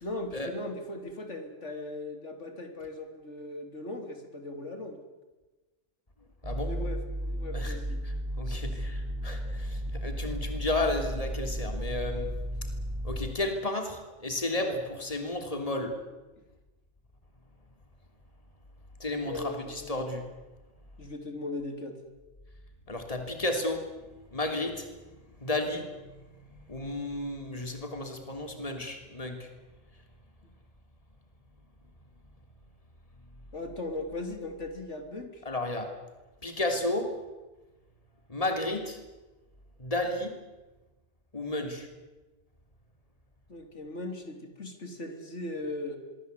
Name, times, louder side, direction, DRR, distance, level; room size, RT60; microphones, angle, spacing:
voice 1, 0.0-5.0 6.7-8.1 19.3-19.9 21.0-22.0 33.5-35.4 43.5-46.0, left 2 dB, 85° left, 6 dB, 3.6 m, -38 dB
voice 2, 6.4-6.7 7.5-7.8 8.0-12.3 13.0-16.0 19.0-20.2 22.9-23.9 24.3-29.5 35.4-35.9 36.4-37.1 38.3-39.0 39.8-40.3 41.3-41.9, left 2 dB, 30° left, 5 dB, 3.2 m, -33 dB
sound 1, 6.4-13.3, equal, 20° right, 3.9 m, -34 dB
25.0 x 23.5 x 8.3 m, 1.2 s
omnidirectional pair, 1.2 m